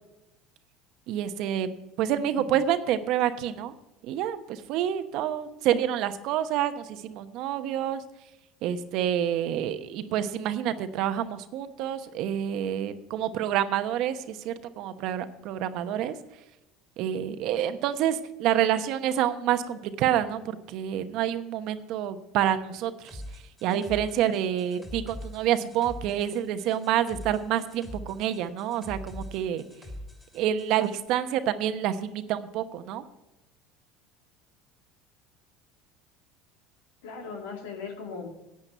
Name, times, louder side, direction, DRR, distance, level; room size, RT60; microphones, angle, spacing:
voice 1, 1.1-1.7 2.0-3.7 4.1-8.0 8.6-16.1 17.0-23.2 23.6-29.6 30.3-33.0, right 10 dB, 65° right, 10 dB, 0.9 m, -28 dB
voice 2, 2.1-2.4 37.0-38.3, left 5 dB, 85° left, 2 dB, 2.4 m, -38 dB
sound 1, 23.1-30.9, left 1 dB, 10° left, 2.8 m, -43 dB
10.0 x 8.7 x 5.6 m, 0.95 s
supercardioid pair, 90°, 0 cm